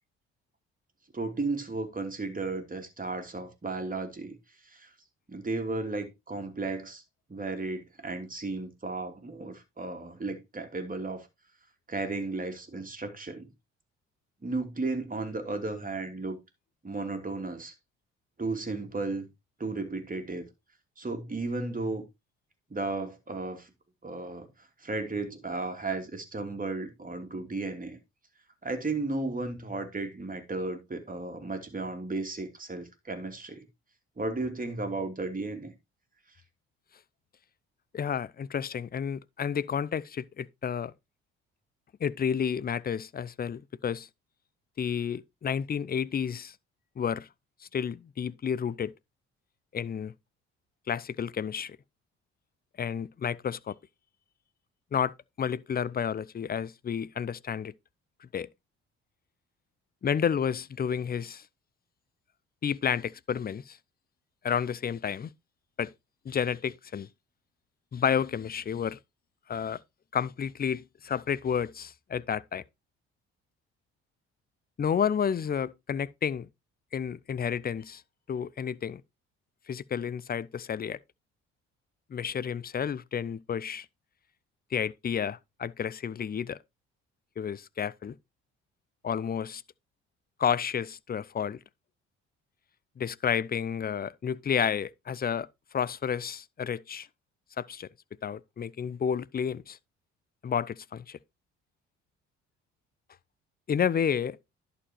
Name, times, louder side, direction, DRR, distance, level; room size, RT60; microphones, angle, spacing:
voice 1, 1.1-4.4 4.6-4.9 5.3-7.0 7.3-11.3 11.9-13.5 14.4-16.4 16.8-17.7 18.4-19.3 19.6-20.5 21.0-22.0 22.7-23.7 24.0-24.5 24.8-28.0 28.6-33.6 34.2-35.7, right 3 dB, 25° right, 3.0 m, -34 dB
voice 2, 37.9-40.9 42.0-44.1 44.8-46.5 47.0-47.3 47.6-48.9 49.7-50.1 50.9-51.8 52.8-53.7 54.9-55.1 55.4-57.7 58.2-58.5 60.0-61.5 62.6-63.8 64.4-65.3 65.8-65.9 66.2-67.1 67.9-69.0 69.5-69.8 70.1-72.6 74.8-76.5 76.9-78.0 78.3-79.0 79.7-81.0 82.1-83.9 84.7-86.6 87.4-88.2 89.0-89.6 90.4-91.6 93.0-95.5 95.7-97.1 97.6-97.9 98.2-99.8 100.4-101.2 103.7-104.4, left 7 dB, 25° left, 0.6 m, -31 dB
11.0 x 5.0 x 4.5 m
hypercardioid pair, 50°, 34 cm